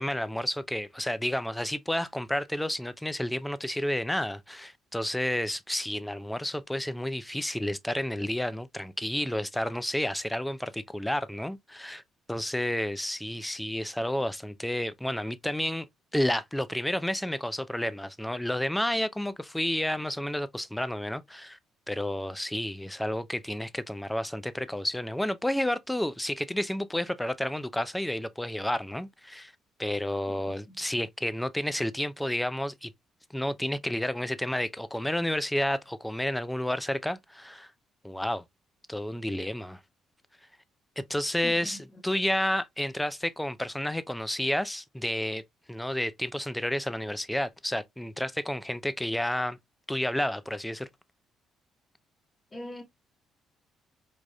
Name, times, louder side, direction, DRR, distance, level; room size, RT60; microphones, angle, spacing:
voice 1, 0.0-12.0 12.3-15.9 16.1-21.6 21.9-29.5 29.8-32.9 33.3-37.7 38.0-38.4 38.9-39.8 41.0-45.4 45.7-49.6 49.9-50.9, left 1 dB, 5° left, 0.4 m, -31 dB
voice 2, 30.3-30.8 41.4-42.0 52.5-52.8, left 1 dB, 25° left, 1.2 m, -43 dB
4.8 x 2.5 x 2.2 m
cardioid pair, 80°, 0 cm